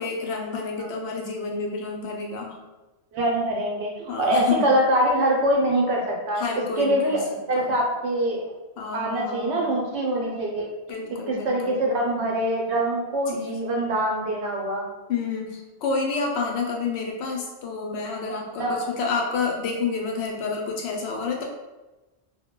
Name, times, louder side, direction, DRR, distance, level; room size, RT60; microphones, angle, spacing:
voice 1, 0.0-2.6 4.1-4.8 6.4-7.2 7.5-7.7 8.8-9.7 10.9-11.9 13.3-13.6 15.1-21.4, left 4 dB, 75° left, 0 dB, 0.8 m, -29 dB
voice 2, 3.1-6.4 6.8-7.2 7.5-8.5 8.9-10.7 11.3-14.9 18.6-18.8, right 1 dB, 80° right, -1 dB, 0.9 m, -24 dB
2.2 x 2.1 x 3.6 m, 1.1 s
omnidirectional pair, 1.1 m